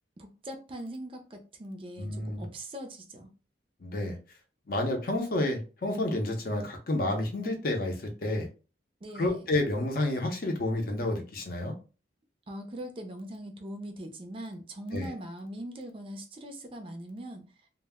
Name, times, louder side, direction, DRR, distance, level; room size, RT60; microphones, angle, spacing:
voice 1, 0.2-3.3 9.0-9.4 12.5-17.4, right 1 dB, 30° right, 0.4 m, -41 dB
voice 2, 2.0-2.4 3.8-4.2 4.7-8.5 9.1-11.7 14.9-15.1, left 1 dB, 50° left, 0.6 m, -30 dB
2.1 x 2.0 x 3.4 m
head